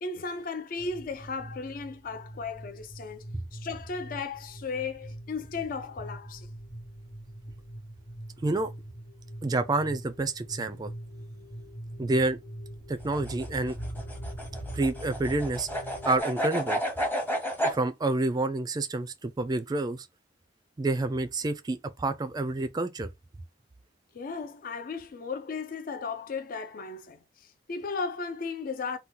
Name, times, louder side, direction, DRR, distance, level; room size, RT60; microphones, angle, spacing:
voice 1, 0.0-3.3 3.5-6.5 24.1-29.0, left 4 dB, 50° left, 0.4 m, -35 dB
sound 1, 0.8-16.2, right 1 dB, 90° left, 1.5 m, -43 dB
voice 2, 9.4-10.9 12.0-12.4 12.9-13.8 14.7-15.7 16.1-16.8 17.6-20.1 20.8-23.1, right 2 dB, 20° right, 0.3 m, -28 dB
sound 2, 13.0-17.8, equal, 10° left, 0.8 m, -31 dB
2.8 x 2.2 x 3.6 m
head